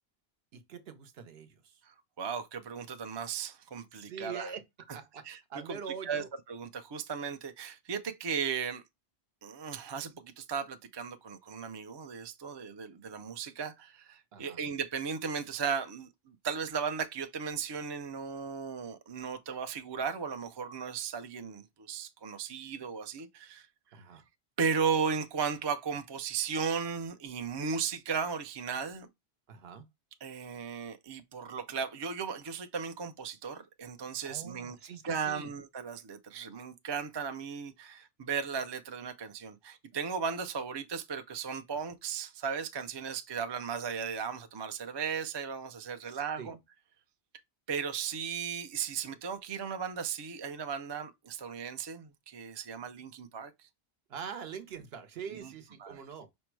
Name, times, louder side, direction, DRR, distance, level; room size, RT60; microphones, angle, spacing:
voice 1, 0.5-1.8 3.9-4.6 4.9-5.2 5.5-6.3 14.3-14.6 23.9-24.2 29.5-29.9 34.2-35.5 46.0-46.6 54.1-56.3, right 7 dB, 70° right, 0.9 m, -44 dB
voice 2, 1.8-4.5 5.2-5.4 5.7-8.8 9.4-23.7 24.1-24.2 24.6-29.1 30.2-34.8 35.0-46.6 47.7-53.7 55.3-55.5 55.8-56.0, right 6 dB, 40° right, 0.3 m, -36 dB
5.2 x 2.0 x 4.5 m
omnidirectional pair, 1.1 m